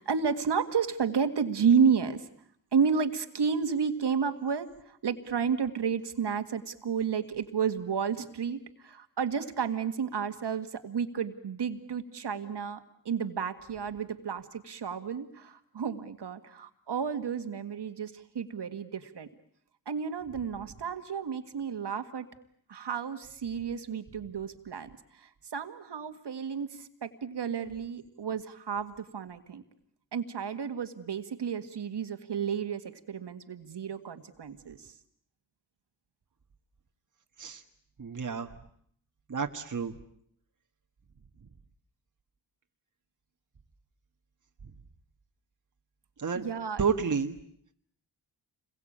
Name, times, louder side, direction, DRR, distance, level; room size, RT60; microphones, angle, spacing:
voice 1, 0.0-2.3 2.7-12.8 13.1-19.3 19.9-22.3 22.7-29.6 30.1-34.9 46.4-46.8, right 6 dB, 65° right, 8 dB, 1.9 m, -31 dB
voice 2, 38.0-38.5 39.3-39.9 46.2-46.5 46.8-47.4, right 6 dB, 45° right, 4 dB, 1.6 m, -30 dB
28.5 x 22.0 x 8.8 m, 0.66 s
wide cardioid pair, 105°, 44 cm